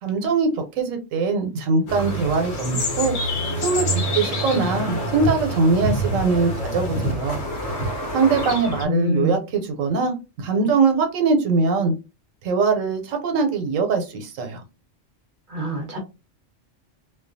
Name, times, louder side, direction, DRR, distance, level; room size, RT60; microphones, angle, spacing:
voice 1, 0.0-3.2 3.6-3.9 4.1-7.4 8.1-11.9 12.4-14.6, right 4 dB, 90° right, 5 dB, 1.0 m, -22 dB
sound 1, 1.9-8.9, equal, 60° left, 0.9 m, -26 dB
voice 2, 8.8-9.4 15.5-16.0, left 1 dB, 50° right, 2 dB, 0.7 m, -24 dB
2.3 x 2.2 x 2.5 m, 0.28 s
omnidirectional pair, 1.3 m